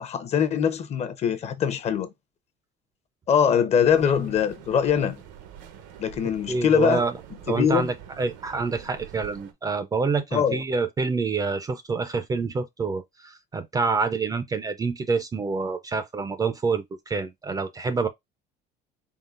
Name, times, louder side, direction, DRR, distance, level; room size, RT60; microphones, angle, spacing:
voice 1, 0.0-2.1 3.3-5.2 6.0-7.0 7.5-7.9 10.3-10.6, left 7 dB, 35° left, 0.7 m, -22 dB
sound 1, 3.8-9.5, right 9 dB, 90° right, 1.0 m, -45 dB
voice 2, 6.5-7.1 7.5-18.1, right 4 dB, 20° right, 0.4 m, -27 dB
3.9 x 3.8 x 2.4 m
cardioid pair, 145°, 18 cm